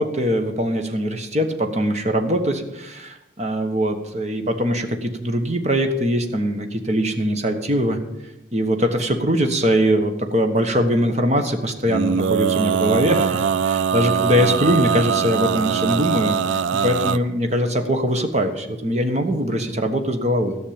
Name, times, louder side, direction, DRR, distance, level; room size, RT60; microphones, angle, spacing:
voice 1, 0.0-8.0 8.5-20.6, equal, 35° right, 6 dB, 1.3 m, -22 dB
Male singing, 11.9-17.2, right 7 dB, 90° right, 0.4 m, -22 dB
13.5 x 6.4 x 8.8 m, 0.96 s
head